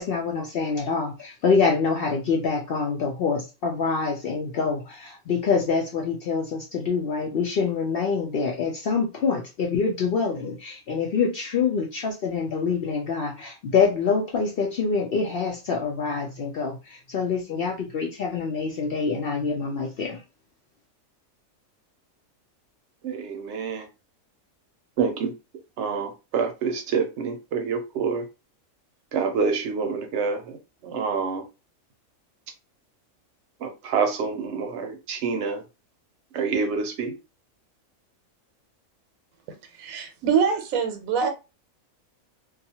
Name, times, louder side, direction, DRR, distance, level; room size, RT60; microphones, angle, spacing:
voice 1, 0.0-20.2, left 5 dB, 65° left, 0.6 m, -25 dB
voice 2, 23.0-23.9 25.0-25.3 25.8-28.3 29.1-31.4 33.6-35.6 36.3-37.1, right 5 dB, 65° right, 0.8 m, -27 dB
voice 3, 39.8-41.3, right 6 dB, 80° right, 1.0 m, -24 dB
2.4 x 2.3 x 2.7 m
omnidirectional pair, 1.4 m